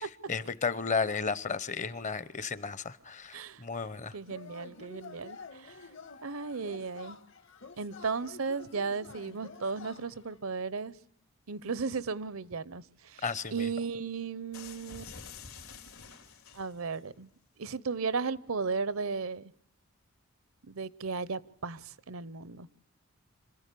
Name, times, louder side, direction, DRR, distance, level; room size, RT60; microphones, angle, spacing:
voice 1, 0.3-4.1 13.2-13.7, left 5 dB, 35° left, 0.8 m, -33 dB
voice 2, 3.3-3.6 4.1-5.8 6.2-7.2 7.8-10.9 11.5-13.2 13.5-15.1 16.5-17.3 17.6-19.5 20.7-22.7, right 4 dB, 80° right, 0.8 m, -35 dB
Yell / Cheering, 4.3-10.4, left 4 dB, 55° left, 1.4 m, -49 dB
sound 1, 14.5-17.0, left 5 dB, 80° left, 3.6 m, -48 dB
26.0 x 15.0 x 8.4 m
head